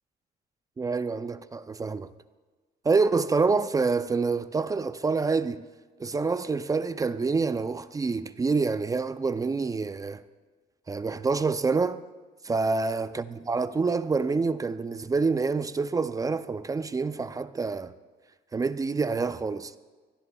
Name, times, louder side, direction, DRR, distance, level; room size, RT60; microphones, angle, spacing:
voice 1, 0.8-2.1 2.8-5.6 6.0-10.2 10.9-12.0 12.4-17.9 18.5-19.8, right 4 dB, 20° right, 0.5 m, -27 dB
24.0 x 15.5 x 2.3 m
cardioid pair, 110°, 17 cm